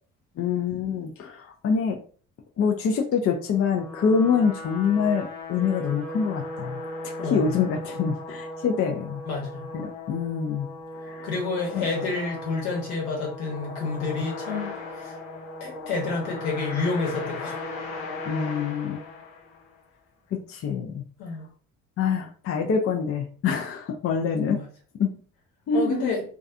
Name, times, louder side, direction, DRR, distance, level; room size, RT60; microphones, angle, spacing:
voice 1, 0.4-2.0 2.6-9.2 9.7-10.7 11.0-11.3 11.7-11.8 18.3-19.0 20.3-21.0 22.0-24.6 25.0-25.1 25.7-26.1, left 6 dB, 35° left, 3 dB, 0.4 m, -25 dB
sound 1, 3.5-19.8, left 2 dB, 85° left, 0.6 m, -37 dB
voice 2, 7.2-7.6 9.3-9.6 11.2-15.2 15.6-17.6 21.2-21.4 24.5-24.6 25.7-26.2, left 3 dB, 65° left, -1 dB, 1.1 m, -29 dB
2.3 x 2.3 x 2.5 m, 0.42 s
hypercardioid pair, 50°, 40 cm